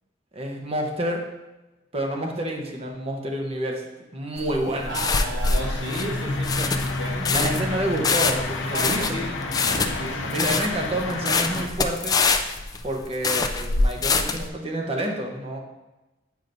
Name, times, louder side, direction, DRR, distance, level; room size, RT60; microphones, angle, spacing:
voice 1, 0.3-1.2 1.9-3.8 4.1-4.9 7.3-9.1 10.2-12.2 12.8-15.6, right 1 dB, 35° right, 1 dB, 0.9 m, -28 dB
sound 1, 4.4-14.5, left 4 dB, 20° left, 0.3 m, -24 dB
voice 2, 4.9-7.7 8.7-10.3, right 1 dB, 70° right, -3 dB, 1.4 m, -33 dB
sound 2, 5.6-11.7, left 2 dB, 85° left, 0.6 m, -30 dB
8.8 x 5.1 x 2.6 m, 1.1 s
head